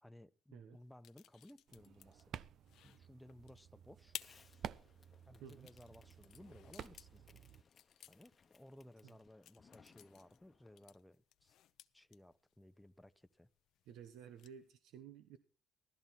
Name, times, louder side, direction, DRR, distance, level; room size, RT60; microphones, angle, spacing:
voice 1, 0.0-2.3 2.8-4.2 5.3-7.4 8.1-11.6 11.9-13.5, left 1 dB, 5° left, 0.8 m, -59 dB
sound 1, 0.7-14.7, left 12 dB, 80° left, 0.7 m, -58 dB
sound 2, 1.7-7.6, right 9 dB, 70° right, 0.6 m, -53 dB
Fireworks, 4.2-11.0, left 5 dB, 40° left, 0.9 m, -68 dB
voice 2, 13.9-15.4, right 8 dB, 90° right, 1.0 m, -54 dB
16.0 x 13.0 x 4.2 m
cardioid pair, 90°, 0 cm